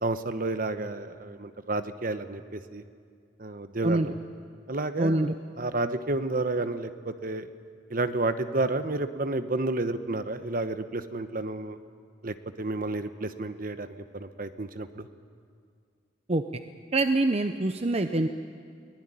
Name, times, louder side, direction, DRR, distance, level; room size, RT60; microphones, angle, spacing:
voice 1, 0.0-2.8 3.4-4.2 4.7-5.3 5.6-7.5 7.9-11.8 12.2-13.9 14.1-15.1, right 2 dB, 50° right, 10 dB, 1.1 m, -31 dB
voice 2, 5.0-5.3 16.3-16.4 16.9-18.3, right 2 dB, 35° right, 8 dB, 0.7 m, -25 dB
23.0 x 19.0 x 10.0 m, 2.2 s
head